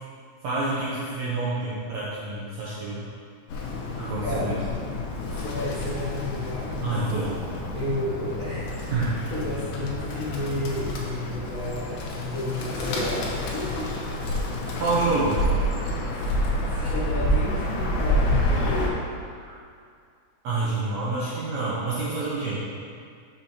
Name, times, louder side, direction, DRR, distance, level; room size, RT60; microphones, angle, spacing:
voice 1, 0.4-3.1 4.0-4.6 6.8-7.4 8.9-9.2 14.8-15.5 19.3-19.5 20.4-22.6, right 3 dB, 75° right, -8 dB, 1.7 m, -27 dB
Bird, 3.5-18.9, left 1 dB, 85° left, 2.6 m, -28 dB
voice 2, 4.2-4.6 5.2-7.0 7.7-13.9 15.5-15.6 16.1-19.0, left 1 dB, 70° left, -13 dB, 0.8 m, -32 dB
6.9 x 6.2 x 2.8 m, 2.3 s
omnidirectional pair, 4.1 m